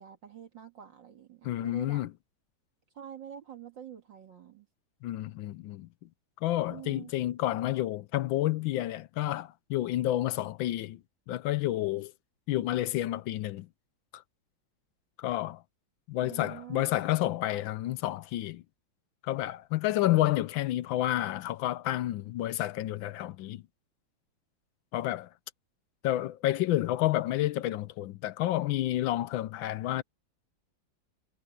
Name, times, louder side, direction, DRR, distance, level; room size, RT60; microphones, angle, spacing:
voice 1, 0.0-2.0 2.9-4.7 6.7-7.1 16.2-16.8, right 10 dB, 65° right, 2.4 m, -46 dB
voice 2, 1.4-2.1 5.0-5.9 6.4-11.0 11.3-12.1 12.5-13.7 14.1-14.2 15.2-15.6 16.1-18.6 19.2-23.6 24.9-25.3 26.0-30.0, left 14 dB, 80° left, 1.3 m, -30 dB
omnidirectional pair, 2.2 m